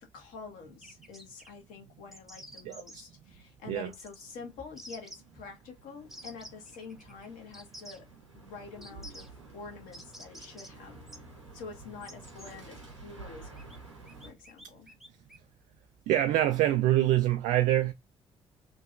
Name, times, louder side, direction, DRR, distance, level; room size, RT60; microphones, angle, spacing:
voice 1, 0.0-8.1 8.3-10.9 11.5-13.7 14.2-14.9, left 5 dB, 60° left, 1.2 m, -47 dB
sound 1, 0.8-1.5 2.1-3.0 3.9-4.3 4.8-5.2 6.1-7.3 7.5-8.0 8.8-9.3 9.9-10.7 11.1-11.2 12.0-12.5 13.6-13.8 14.1-15.4, equal, ahead, 0.7 m, -49 dB
voice 2, 2.6-3.0 3.7-3.9 16.1-17.9, right 13 dB, 60° right, 0.4 m, -25 dB
sound 2, 2.7-14.3, right 3 dB, 90° right, 0.7 m, -52 dB
3.0 x 2.7 x 2.4 m
figure-of-eight pair, 40°, 15 cm